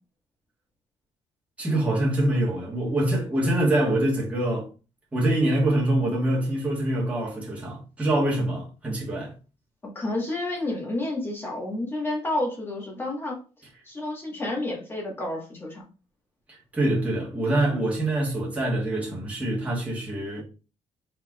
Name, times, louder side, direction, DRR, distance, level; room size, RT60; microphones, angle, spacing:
voice 1, 1.6-4.7 5.1-9.3 16.7-20.4, right 1 dB, 10° right, 1.4 m, -25 dB
voice 2, 9.9-13.4 13.8-15.8, left 2 dB, 20° left, 1.5 m, -30 dB
4.4 x 4.1 x 2.4 m
cardioid pair, 155°, 12 cm